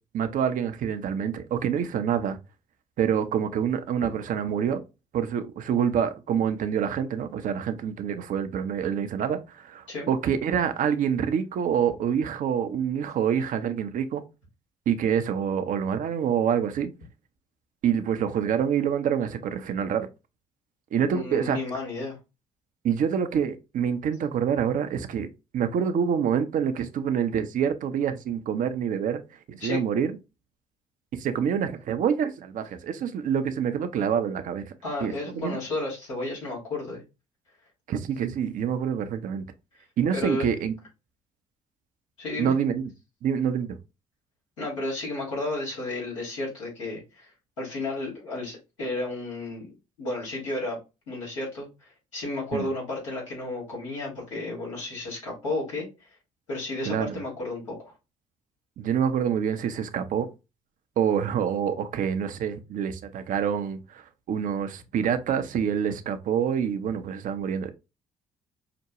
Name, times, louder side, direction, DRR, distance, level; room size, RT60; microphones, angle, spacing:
voice 1, 0.1-2.4 3.0-4.8 5.1-14.2 14.9-16.9 17.8-20.1 20.9-21.6 22.8-25.3 25.5-29.2 29.5-30.1 31.1-34.7 35.0-35.6 37.9-39.4 40.0-40.7 42.4-42.9 43.2-43.8 52.5-52.7 56.9-57.2 58.8-60.3 61.0-64.0 64.3-67.7, right 8 dB, 55° right, 0.6 m, -26 dB
voice 2, 21.0-22.2 29.6-29.8 34.8-37.0 40.1-40.5 42.2-42.5 44.6-47.3 47.6-49.7 50.0-50.8 51.1-56.1 56.5-57.9, left 2 dB, 90° left, 2.0 m, -32 dB
5.9 x 2.2 x 2.8 m
hypercardioid pair, 55°, 16 cm